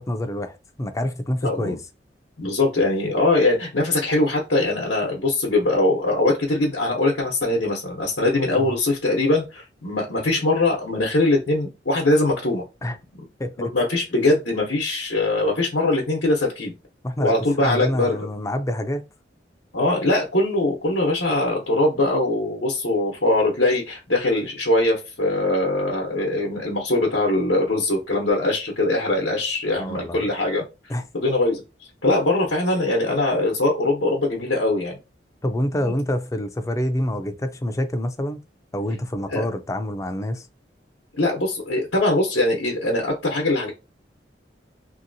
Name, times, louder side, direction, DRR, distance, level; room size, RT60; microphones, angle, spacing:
voice 1, 0.0-1.8 8.6-8.8 12.8-13.0 13.4-13.7 17.0-19.0 29.8-30.3 30.9-31.0 35.4-38.4 38.7-40.5, left 1 dB, 20° left, 0.4 m, -27 dB
voice 2, 1.4-1.8 2.4-12.6 13.6-16.7 17.2-18.2 19.7-30.6 31.1-31.6 32.0-35.0 35.8-35.9 39.3-39.5 41.2-43.7, left 2 dB, 90° left, 0.9 m, -22 dB
2.9 x 2.8 x 2.6 m
head